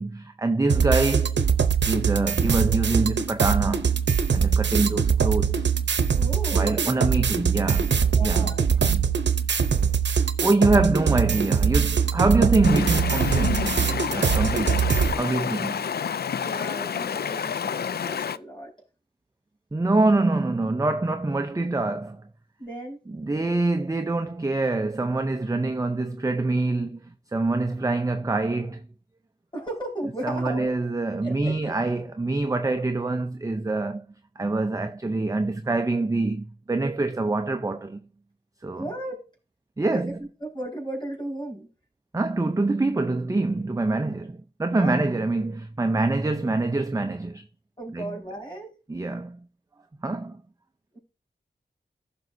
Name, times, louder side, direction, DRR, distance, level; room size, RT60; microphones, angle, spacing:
voice 1, 0.0-1.4 1.9-3.9 4.3-5.5 6.5-7.9 8.2-8.5 8.8-9.1 10.4-14.9 15.2-15.9 19.7-22.3 23.1-28.8 30.2-34.1 34.4-38.0 38.6-38.8 39.8-40.1 42.1-47.4 47.9-48.2 48.9-49.5 50.0-50.4, right 2 dB, 20° right, 0.5 m, -25 dB
sound 1, 0.7-15.1, right 6 dB, 85° right, 0.7 m, -22 dB
voice 2, 6.1-7.0 8.1-8.7 10.7-10.9 16.3-18.7 22.6-23.0 29.5-30.8 31.2-31.7 38.8-39.3 39.9-40.1 40.4-41.7 44.7-45.1 47.8-48.7 50.9-51.0, right 1 dB, 25° left, 5.2 m, -35 dB
Stream, 12.6-18.4, left 7 dB, 65° left, 0.4 m, -29 dB
15.0 x 6.1 x 2.6 m
wide cardioid pair, 80°, 18 cm